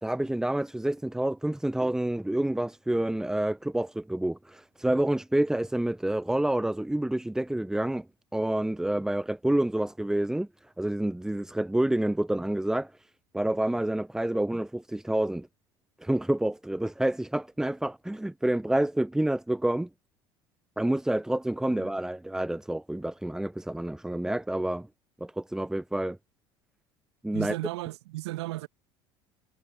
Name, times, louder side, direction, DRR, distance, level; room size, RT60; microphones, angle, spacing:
voice 1, 0.0-8.1 8.3-10.5 10.8-15.5 16.0-19.9 20.8-24.9 25.2-26.2 27.2-27.6, right 1 dB, 5° right, 0.4 m, -28 dB
voice 2, 27.3-28.7, right 18 dB, 75° right, 1.7 m, -35 dB
hypercardioid pair, 70°, 14 cm